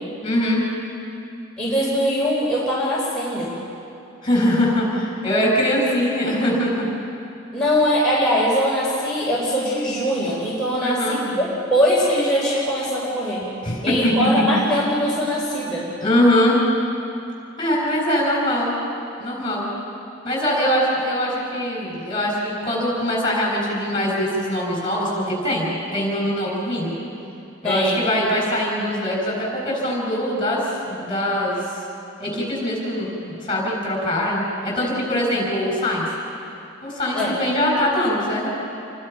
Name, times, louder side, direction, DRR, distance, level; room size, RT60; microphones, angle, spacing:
voice 1, 0.2-0.6 4.2-6.9 10.8-11.2 13.6-14.4 16.0-16.6 17.6-18.7 19.2-19.7 20.2-26.9 27.6-31.8 32.2-36.1 36.8-38.5, left 1 dB, 25° left, -2 dB, 7.0 m, -22 dB
voice 2, 1.6-3.5 7.5-13.5 13.8-15.9 27.6-28.0 37.1-37.4, equal, 5° left, -9 dB, 4.4 m, -21 dB
29.0 x 23.5 x 5.8 m, 2.7 s
head